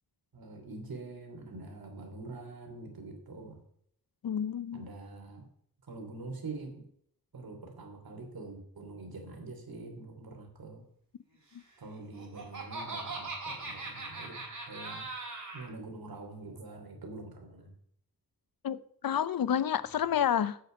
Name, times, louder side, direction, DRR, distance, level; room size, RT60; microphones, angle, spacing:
voice 1, 0.3-3.6 4.7-5.4 5.9-6.8 7.3-10.8 11.8-15.1 15.5-17.7, right 3 dB, 70° right, 3.0 m, -45 dB
voice 2, 4.2-4.8 18.6-20.6, left 9 dB, 65° left, 0.7 m, -29 dB
Laughter, 11.9-15.7, right 3 dB, 50° right, 4.7 m, -40 dB
8.0 x 6.8 x 8.3 m
wide cardioid pair, 90°, 38 cm